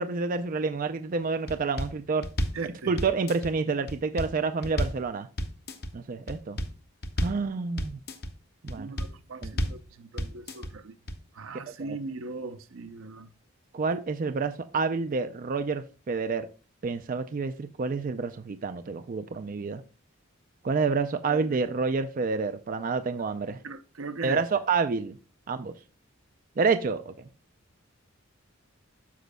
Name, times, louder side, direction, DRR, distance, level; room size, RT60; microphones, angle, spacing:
voice 1, 0.0-2.3 2.9-5.3 5.9-6.6 7.2-8.0 8.6-8.9 9.4-9.5 11.8-12.0 13.7-16.5 16.8-19.8 20.6-23.6 24.2-25.2 25.5-25.7 26.6-27.1, right 4 dB, 40° right, 0.4 m, -28 dB
sound 1, 1.5-1.9 2.2-2.6 3.0-3.5 3.9-4.3 4.6-5.0 5.4-5.9 6.3-6.7 7.0-7.4 7.8-8.3 8.7-9.1 9.4-9.8 10.2-10.7 11.1-11.2, equal, 50° left, 0.8 m, -31 dB
voice 2, 2.5-2.9 8.7-10.9 11.3-13.3 21.3-21.5 23.6-24.4, right 3 dB, 75° right, 0.7 m, -39 dB
13.0 x 5.1 x 2.2 m
head